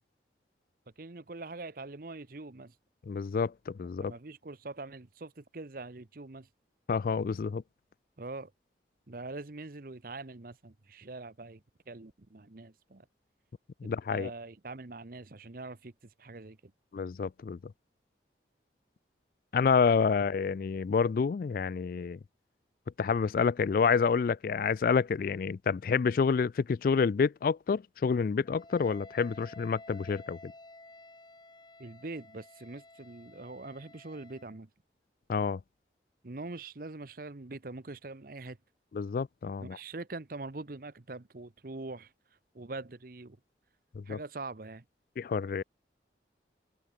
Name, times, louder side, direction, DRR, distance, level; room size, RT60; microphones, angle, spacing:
voice 1, 1.0-2.7 4.0-6.5 8.2-8.5 9.1-13.1 13.8-15.9 16.2-16.7 31.8-34.7 36.2-38.6 39.6-42.1 42.5-43.4 44.1-44.8, right 3 dB, 55° right, 0.9 m, -43 dB
voice 2, 3.1-4.1 6.9-7.6 13.8-14.3 16.9-17.6 19.5-22.2 23.0-30.5 35.3-35.6 38.9-39.8 43.9-44.2 45.2-45.6, left 5 dB, 50° left, 0.3 m, -28 dB
Wind instrument woodwind instrument, 28.5-34.6, left 2 dB, 25° left, 4.6 m, -53 dB
open air
head